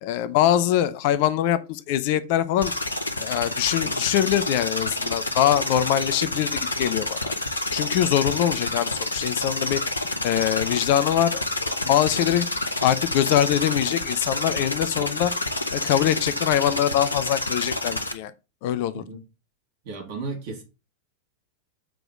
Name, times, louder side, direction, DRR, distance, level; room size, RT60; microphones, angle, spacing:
voice 1, 0.0-2.7 3.2-7.3 7.7-9.8 10.2-12.5 12.8-15.3 15.7-18.3 18.6-19.0, left 11 dB, 50° left, 0.7 m, -23 dB
sound 1, 2.6-18.1, left 2 dB, 80° left, 1.0 m, -28 dB
voice 2, 19.8-20.6, right 3 dB, 50° right, 3.2 m, -34 dB
7.7 x 4.9 x 3.7 m
figure-of-eight pair, 90°, 0 cm